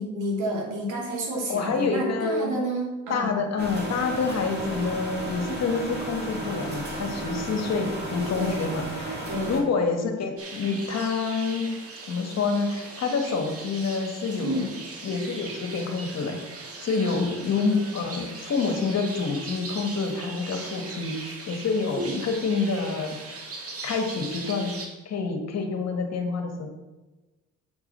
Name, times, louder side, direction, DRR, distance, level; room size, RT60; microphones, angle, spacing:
voice 1, 0.0-3.3 8.4-8.7 9.3-9.6 14.4-14.7 17.0-17.2 21.9-22.2, right 1 dB, 80° right, -1 dB, 2.8 m, -30 dB
voice 2, 1.5-2.6 3.1-9.2 9.5-11.7 12.1-14.7 15.0-16.4 16.8-23.4 23.8-24.8 25.1-26.7, left 4 dB, 60° left, 4 dB, 1.6 m, -27 dB
sound 1, 3.6-9.6, right 2 dB, 35° right, 2.4 m, -33 dB
sound 2, 10.4-24.9, right 3 dB, 50° right, 1.9 m, -39 dB
8.2 x 4.9 x 6.6 m, 1.2 s
cardioid pair, 90°, 30 cm